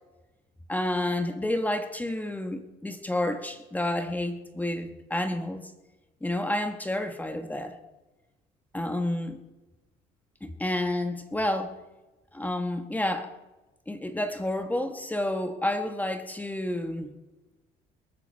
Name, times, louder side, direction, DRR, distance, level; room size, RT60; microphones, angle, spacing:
voice 1, 0.7-5.7 6.2-7.8 8.7-9.4 10.4-11.7 12.3-13.3 13.9-17.1, left 1 dB, 10° left, 7 dB, 1.3 m, -30 dB
22.0 x 14.0 x 4.5 m, 1.1 s
cardioid pair, 110°, 17 cm